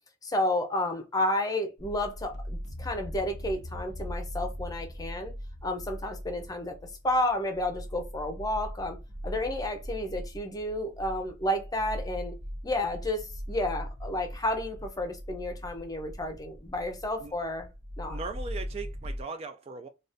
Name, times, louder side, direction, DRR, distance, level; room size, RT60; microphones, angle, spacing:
voice 1, 0.2-5.3 5.6-6.8 7.0-9.0 9.2-12.3 12.6-17.7 18.0-18.2, left 1 dB, 20° left, 0.6 m, -31 dB
sound 1, 1.8-19.2, equal, 65° right, 0.8 m, -40 dB
voice 2, 18.0-19.9, right 4 dB, 30° right, 0.3 m, -39 dB
3.9 x 2.4 x 2.5 m
head